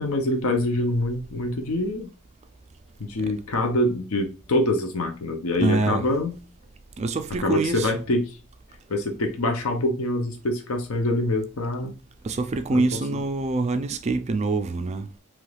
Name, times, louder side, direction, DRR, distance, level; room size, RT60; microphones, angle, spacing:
voice 1, 0.0-2.1 3.0-6.4 7.4-8.4 8.9-11.9 12.7-12.8, left 1 dB, 70° left, 0.6 m, -25 dB
voice 2, 5.6-6.0 7.0-7.9 12.2-15.1, right 3 dB, 30° right, 0.3 m, -25 dB
3.0 x 2.3 x 3.2 m
head